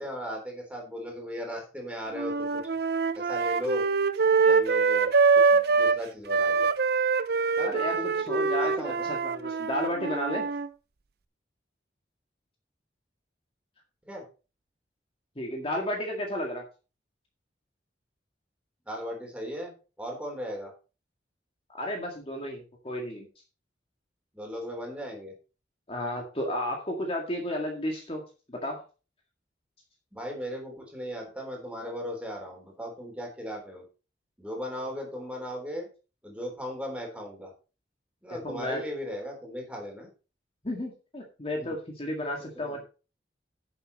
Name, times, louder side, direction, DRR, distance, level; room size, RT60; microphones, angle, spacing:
voice 1, 0.0-2.6 3.2-3.8 4.4-6.7 7.6-8.2 8.6-9.1 14.1-14.2 18.9-20.7 24.3-25.3 30.1-33.8 34.4-35.9 36.2-37.5 38.2-40.1 41.6-41.8 42.4-42.8, equal, 5° right, 1 dB, 3.6 m, -37 dB
sound 1, 2.1-6.0 6.3-10.7, right 4 dB, 60° right, 0.6 m, -24 dB
voice 2, 7.6-8.0 8.3-10.4 15.4-16.6 21.7-23.3 25.9-28.2 28.5-28.8 38.4-38.8 40.6-42.8, left 1 dB, 30° left, 1 dB, 1.9 m, -32 dB
10.5 x 7.2 x 4.2 m, 0.33 s
head